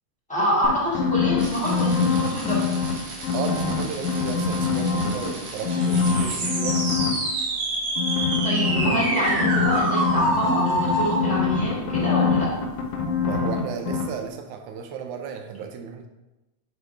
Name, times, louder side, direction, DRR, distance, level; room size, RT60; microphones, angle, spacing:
voice 1, 0.3-2.6 8.4-12.5, equal, 5° left, -7 dB, 1.1 m, -26 dB
sound 1, 0.6-2.9 3.2-5.3 5.6-7.1 8.0-13.6 13.9-14.0, left 5 dB, 80° left, 2.3 m, -24 dB
sound 2, 1.4-11.2, right 2 dB, 65° right, 2.0 m, -28 dB
voice 2, 3.3-7.0 13.2-16.1, right 7 dB, 90° right, 5 dB, 2.1 m, -34 dB
6.6 x 4.9 x 3.3 m, 1.0 s
omnidirectional pair, 3.4 m